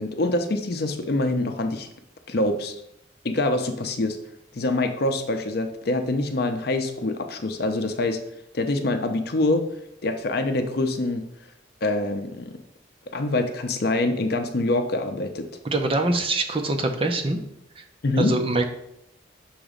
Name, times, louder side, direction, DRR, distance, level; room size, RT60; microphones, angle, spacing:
voice 1, 0.0-1.9 2.3-2.7 3.2-4.2 4.5-8.2 8.5-9.6 10.0-11.2 11.8-12.5 13.1-15.5 18.0-18.4, left 2 dB, 55° left, 6 dB, 0.6 m, -25 dB
voice 2, 15.7-17.4 17.8-17.9 18.2-18.7, right 2 dB, 30° right, 4 dB, 0.6 m, -24 dB
6.3 x 3.0 x 5.0 m, 0.80 s
head